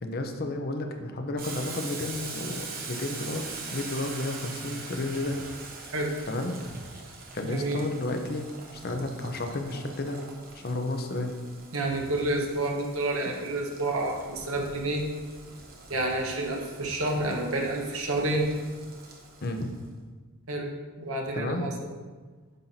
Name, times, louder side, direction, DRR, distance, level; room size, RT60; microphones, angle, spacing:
voice 1, 0.0-5.4 6.3-6.6 7.3-10.2 10.5-11.3 19.4-19.7 21.3-21.7, left 2 dB, 45° left, 4 dB, 0.7 m, -32 dB
Boiling, 1.4-19.8, right 4 dB, 40° right, 0.9 m, -43 dB
voice 2, 7.4-7.8 11.7-15.0 15.9-18.5 20.5-20.7 21.0-21.7, right 2 dB, 75° right, 1 dB, 1.1 m, -29 dB
9.1 x 5.7 x 2.7 m, 1.4 s
head